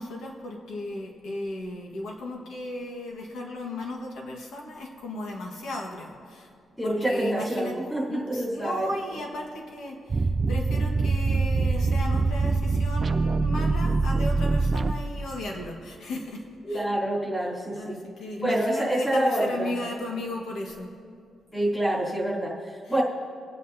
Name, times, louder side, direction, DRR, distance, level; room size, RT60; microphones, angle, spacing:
voice 1, 0.0-6.5 6.8-7.8 8.1-16.9 17.4-20.9 22.8-22.9, left 1 dB, 80° left, 0 dB, 1.6 m, -35 dB
voice 2, 6.8-8.9 16.6-18.0 18.4-19.7 21.5-23.0, right 1 dB, 10° left, -8 dB, 3.3 m, -27 dB
sound 1, 10.1-15.4, right 3 dB, 25° right, 0.3 m, -24 dB
22.5 x 9.4 x 2.8 m, 2.4 s
wide cardioid pair, 180°, 0 cm